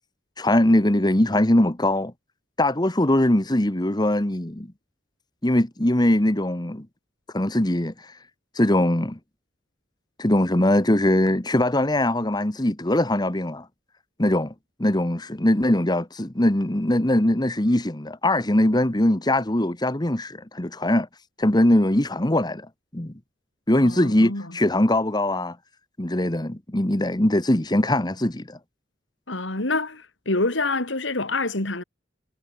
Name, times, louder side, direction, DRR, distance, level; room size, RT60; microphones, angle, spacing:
voice 1, 0.4-2.1 2.6-4.7 5.4-6.9 7.3-8.1 8.5-9.2 10.2-13.7 14.2-14.5 14.8-21.1 21.4-22.7 22.9-23.1 23.7-25.6 26.0-28.6, left 1 dB, 20° left, 1.4 m, -21 dB
voice 2, 23.8-24.6 29.3-31.8, left 2 dB, 75° left, 3.2 m, -27 dB
head